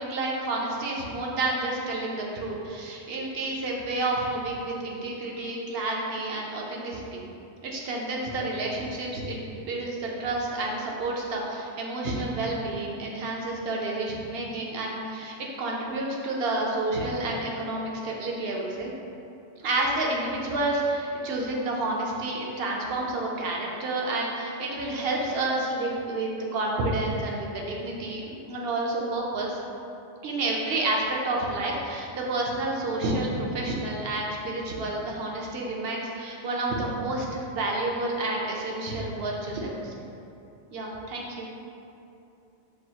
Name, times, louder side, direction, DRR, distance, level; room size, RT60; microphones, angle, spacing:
voice 1, 0.0-7.2 7.6-18.9 19.6-29.6 30.2-40.0 40.7-41.5, right 2 dB, 65° right, -2 dB, 0.8 m, -30 dB
6.1 x 2.3 x 2.8 m, 2.7 s
omnidirectional pair, 1.2 m